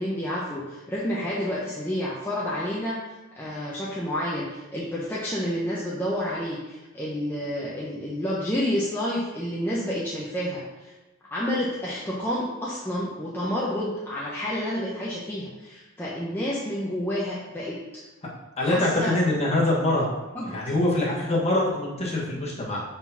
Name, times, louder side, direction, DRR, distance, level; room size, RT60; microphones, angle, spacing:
voice 1, 0.0-3.0 3.3-10.9 11.3-17.8 18.6-19.2 20.3-20.5, equal, 10° left, -7 dB, 0.8 m, -29 dB
voice 2, 18.6-20.0 20.5-22.8, left 1 dB, 30° left, -4 dB, 1.4 m, -24 dB
4.8 x 4.0 x 5.6 m, 1.1 s
head